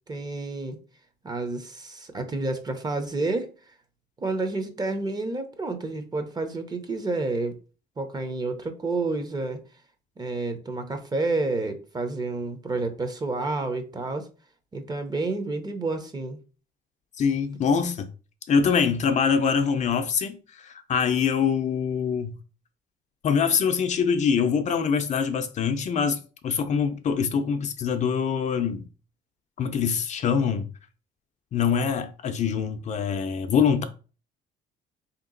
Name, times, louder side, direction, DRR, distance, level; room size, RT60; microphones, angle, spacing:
voice 1, 0.1-0.8 1.2-3.5 4.2-7.6 8.0-9.6 10.2-14.3 14.7-16.4, right 3 dB, 25° right, 0.8 m, -29 dB
voice 2, 17.2-18.1 18.5-22.4 23.2-28.9 29.6-30.7 31.5-33.8, left 6 dB, 45° left, 0.5 m, -24 dB
3.5 x 2.9 x 3.8 m
cardioid pair, 110°, 17 cm